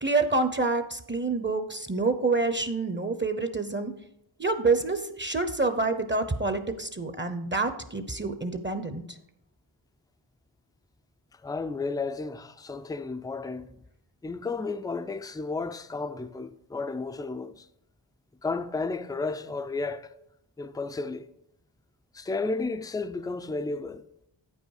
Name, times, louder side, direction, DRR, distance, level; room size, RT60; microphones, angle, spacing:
voice 1, 0.0-3.9 4.4-9.2, right 3 dB, 25° right, 0.7 m, -27 dB
voice 2, 11.4-13.7 14.2-17.7 18.4-20.1 20.6-21.3 22.1-24.0, left 3 dB, 10° left, 0.4 m, -32 dB
8.7 x 5.4 x 4.8 m
cardioid pair, 55°, 48 cm